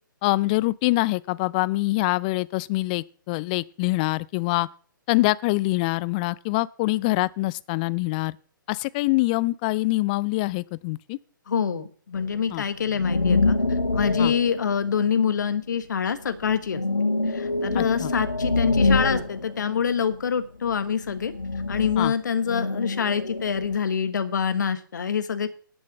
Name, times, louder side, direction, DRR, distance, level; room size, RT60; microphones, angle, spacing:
voice 1, 0.2-4.7 5.1-8.4 8.7-11.2 12.5-12.6 14.2-14.3 17.8-18.1 22.0-22.1, left 21 dB, 25° left, 0.4 m, -24 dB
voice 2, 11.5-16.8 17.3-21.3 21.7-25.5, left 7 dB, 60° left, 1.4 m, -26 dB
sound 1, 12.1-15.7 16.2-20.3 20.6-23.8, left 3 dB, 85° left, 1.4 m, -26 dB
10.5 x 6.2 x 7.3 m
figure-of-eight pair, 130°, 11 cm